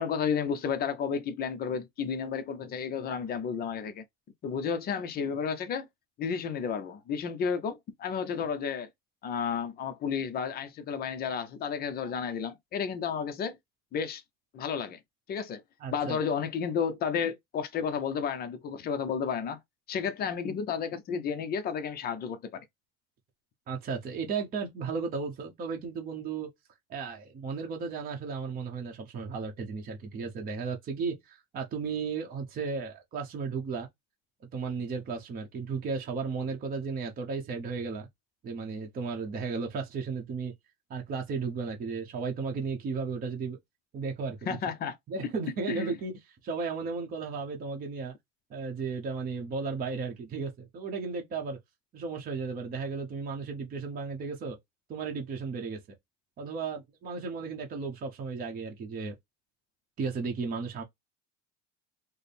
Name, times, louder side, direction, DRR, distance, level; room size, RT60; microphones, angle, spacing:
voice 1, 0.0-4.0 4.4-5.9 6.2-8.9 9.2-13.6 13.9-14.2 14.5-15.0 15.3-15.6 15.9-19.6 19.9-22.6 44.5-45.0 45.2-45.3 45.7-45.9, left 6 dB, 30° left, 0.5 m, -32 dB
voice 2, 15.8-16.2 23.7-26.5 26.9-33.9 34.5-38.1 38.4-40.5 40.9-43.6 43.9-44.6 45.1-48.1 48.5-51.6 51.9-54.6 54.9-55.8 56.4-59.1 60.0-60.8, right 5 dB, 30° right, 0.7 m, -34 dB
4.2 x 2.0 x 3.4 m
cardioid pair, 160°, 32 cm